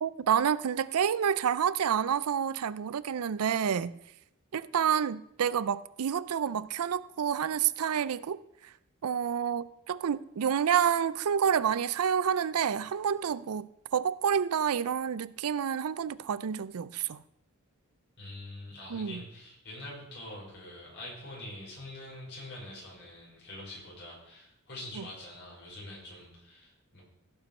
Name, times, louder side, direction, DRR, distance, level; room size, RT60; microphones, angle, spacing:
voice 1, 0.0-3.9 4.5-8.4 9.0-17.2 18.9-19.2, right 8 dB, 80° right, 0.4 m, -29 dB
voice 2, 18.2-27.0, left 1 dB, 50° left, 5.3 m, -45 dB
16.0 x 5.7 x 5.3 m
head